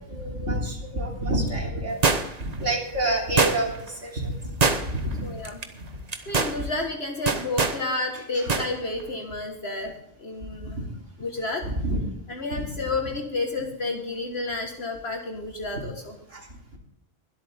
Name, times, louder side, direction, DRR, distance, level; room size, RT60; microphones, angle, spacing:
voice 1, 0.1-1.9 2.4-3.7 4.0-4.4 4.9-5.3 6.6-6.7 8.1-8.5 10.6-10.8 11.6-12.0 12.5-12.7 16.3-16.4, right 1 dB, 75° right, -1 dB, 3.6 m, -28 dB
sound 1, 2.0-2.5 3.4-3.9 4.6-5.1 5.4-5.6 6.1-6.6 7.3-7.8 8.5-8.7 9.0-9.1, right 4 dB, 35° right, 1.0 m, -23 dB
voice 2, 5.2-5.6 6.3-9.9 10.2-10.9 11.2-11.6 12.3-16.2, left 2 dB, 55° left, 2 dB, 1.7 m, -30 dB
22.0 x 8.4 x 3.5 m, 0.81 s
omnidirectional pair, 1.3 m